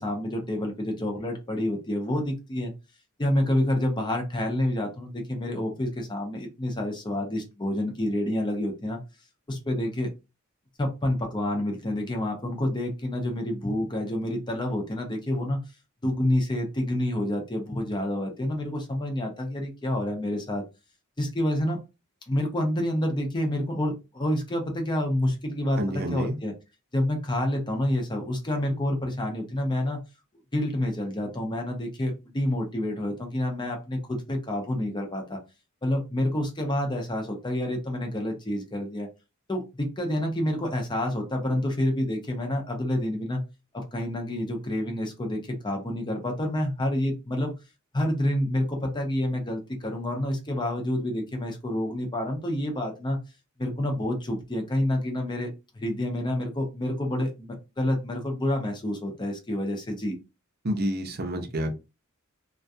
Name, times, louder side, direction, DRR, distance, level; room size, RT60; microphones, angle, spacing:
voice 1, 0.0-2.7 3.2-9.0 9.5-10.1 10.8-15.6 16.0-20.6 21.2-21.8 22.3-26.5 26.9-30.0 30.5-35.4 35.8-39.1 39.5-43.4 43.7-47.5 47.9-53.2 53.6-60.2, left 1 dB, 20° left, 0.6 m, -28 dB
voice 2, 25.8-26.3 60.6-61.7, right 1 dB, 50° right, 0.6 m, -29 dB
2.3 x 2.2 x 2.6 m
head